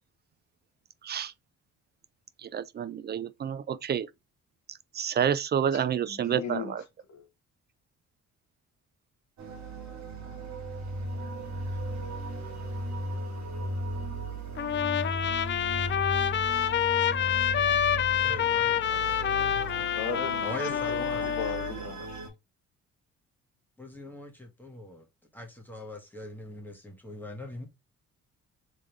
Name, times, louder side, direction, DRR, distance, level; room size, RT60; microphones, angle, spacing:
voice 1, 2.4-4.1 4.9-6.8, right 8 dB, 35° right, 0.4 m, -29 dB
voice 2, 5.7-6.8 7.1-7.3 20.0-22.2, left 5 dB, 65° left, 1.5 m, -38 dB
sound 1, 9.4-22.3, right 1 dB, 70° right, 1.7 m, -36 dB
Trumpet, 14.6-21.7, left 10 dB, 40° left, 0.4 m, -27 dB
voice 3, 18.2-19.9 20.4-21.3 23.8-25.0 25.3-27.7, left 1 dB, 5° left, 1.5 m, -41 dB
3.7 x 3.3 x 3.1 m
cardioid pair, 90°, 30 cm